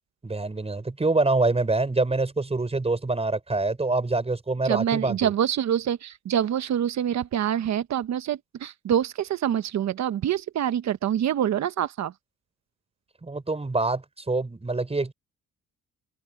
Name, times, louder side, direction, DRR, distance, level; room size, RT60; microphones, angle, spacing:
voice 1, 0.2-5.3 13.2-15.1, right 3 dB, 20° right, 6.1 m, -25 dB
voice 2, 4.6-12.1, right 10 dB, 65° right, 1.2 m, -26 dB
cardioid pair, 90°, 30 cm